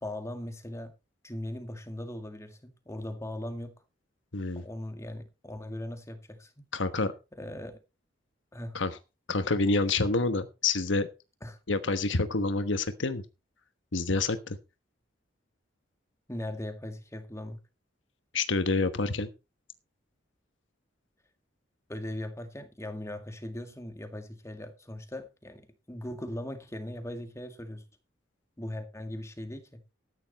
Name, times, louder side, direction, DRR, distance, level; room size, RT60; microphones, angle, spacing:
voice 1, 0.0-0.9 1.2-3.7 4.6-6.7 7.4-7.8 8.5-8.8 11.4-11.6 16.3-17.6 21.9-27.8 28.6-29.8, left 1 dB, 15° left, 2.0 m, -39 dB
voice 2, 6.7-7.1 8.7-8.9 9.3-11.1 11.7-13.2 13.9-14.6 18.3-19.3, left 3 dB, 80° left, 1.2 m, -27 dB
14.0 x 9.9 x 4.2 m
head